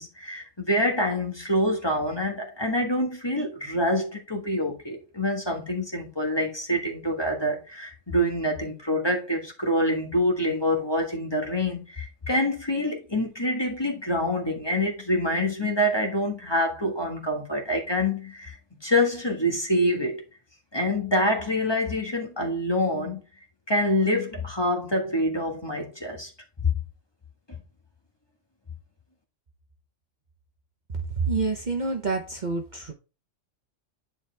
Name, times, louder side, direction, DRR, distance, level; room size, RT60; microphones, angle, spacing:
voice 1, 0.0-20.2 20.7-23.2 23.7-26.3, left 1 dB, 20° left, 1.6 m, -26 dB
voice 2, 31.2-32.9, right 4 dB, 40° right, 1.1 m, -27 dB
10.0 x 4.7 x 3.4 m
omnidirectional pair, 1.3 m